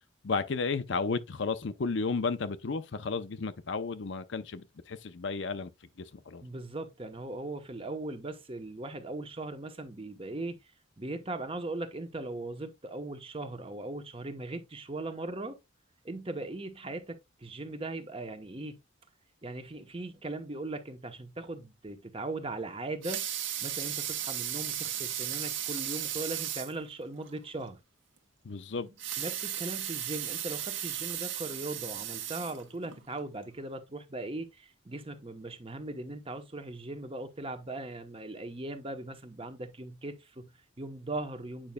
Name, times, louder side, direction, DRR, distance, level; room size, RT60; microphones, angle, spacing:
voice 1, 0.2-5.7 6.1-6.4 28.4-28.9, left 4 dB, 65° left, 0.6 m, -33 dB
voice 2, 6.4-10.6 11.0-15.6 16.0-18.8 19.4-23.3 23.6-27.8 29.2-41.7, right 2 dB, 30° right, 0.9 m, -39 dB
Water tap faucet / Sink (filling or washing) / Liquid, 22.8-26.8 27.2-27.3 27.7-27.8 28.9-33.0 33.6-33.7, right 10 dB, 75° right, 1.3 m, -35 dB
8.8 x 5.3 x 2.2 m
head